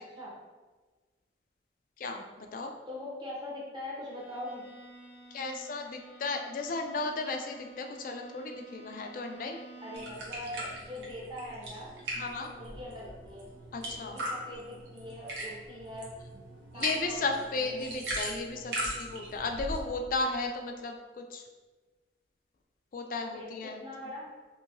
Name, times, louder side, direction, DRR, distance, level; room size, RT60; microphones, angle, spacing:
voice 1, 2.0-2.7 5.3-9.6 12.1-12.5 13.7-14.2 16.7-21.4 22.9-23.8, left 3 dB, 50° left, 4 dB, 0.3 m, -35 dB
voice 2, 2.9-4.6 9.8-12.0 12.4-13.5 13.9-16.1 16.7-17.2 17.5-17.8 23.2-24.3, left 1 dB, 25° right, -5 dB, 0.7 m, -42 dB
Bowed string instrument, 4.1-10.3, right 2 dB, 85° left, 0.7 m, -51 dB
sound 1, 9.9-19.8, right 1 dB, 75° right, 0.8 m, -39 dB
2.8 x 2.7 x 2.6 m, 1.3 s
head